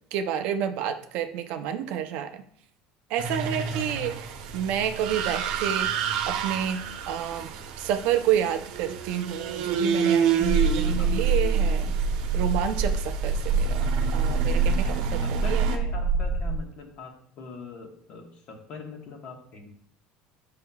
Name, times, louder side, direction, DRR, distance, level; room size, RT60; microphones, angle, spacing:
voice 1, 0.1-2.4 3.1-4.1 4.5-6.0 6.3-7.5 7.8-12.0 12.3-15.6, right 9 dB, 55° right, 7 dB, 0.5 m, -29 dB
sound 1, 3.2-15.8, right 7 dB, 80° right, 0.9 m, -30 dB
voice 2, 3.4-3.8 10.8-11.3 14.7-19.7, left 3 dB, 40° left, 3 dB, 1.1 m, -42 dB
sound 2, 10.4-16.6, right 4 dB, 15° right, 1.3 m, -25 dB
8.0 x 5.6 x 2.3 m, 0.62 s
cardioid pair, 170°, 3 cm